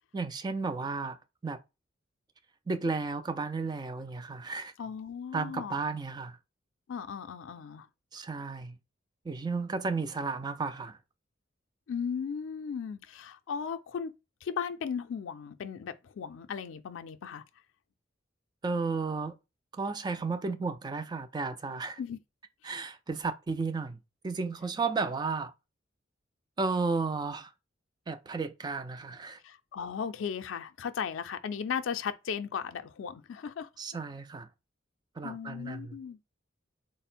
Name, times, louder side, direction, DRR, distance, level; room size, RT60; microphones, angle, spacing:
voice 1, 0.1-1.2 1.4-1.6 2.7-4.7 5.3-6.4 8.1-8.8 9.3-11.0 18.6-19.3 19.7-22.0 22.6-24.0 24.2-25.5 26.6-27.5 28.1-29.4 33.8-34.5 35.2-36.0, right 4 dB, 20° right, 0.3 m, -33 dB
voice 2, 4.8-5.8 6.9-7.9 11.9-14.1 14.4-17.4 22.0-22.2 22.6-22.7 29.4-33.7 35.2-36.2, left 7 dB, 85° left, 0.4 m, -36 dB
3.6 x 2.1 x 4.2 m
head